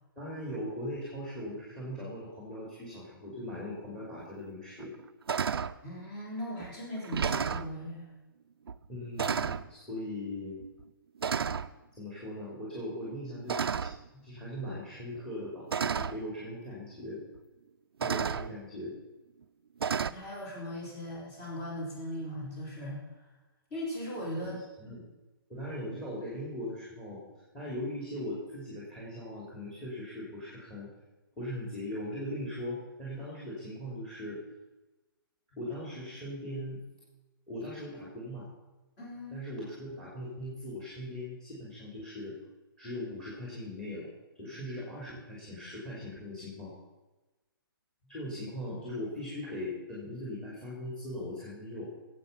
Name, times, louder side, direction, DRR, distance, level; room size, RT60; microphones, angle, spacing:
voice 1, 0.2-4.9 8.9-10.5 11.9-13.9 14.2-17.2 18.0-18.9 24.4-25.0 25.5-27.2 27.5-30.9 31.4-34.4 35.6-36.8 37.5-38.5 39.3-42.3 42.8-44.1 44.3-46.7 48.1-51.9, left 1 dB, 5° left, -5 dB, 3.0 m, -39 dB
sound 1, 4.2-4.3 4.8-5.0 5.3-5.8 6.6-6.7 7.0-7.7 8.7-8.9 9.2-9.7 10.6-10.8 11.2-11.7 13.5-14.1 15.2-15.3 15.7-16.2 17.4-17.5 18.0-18.5 19.8-20.1, right 6 dB, 85° right, 0.6 m, -31 dB
voice 2, 5.8-8.1 14.1-14.2 20.1-23.0 23.7-24.6 39.0-39.4, equal, 25° left, -4 dB, 5.0 m, -38 dB
15.0 x 8.2 x 5.7 m, 1.1 s
hypercardioid pair, 155°, 12 cm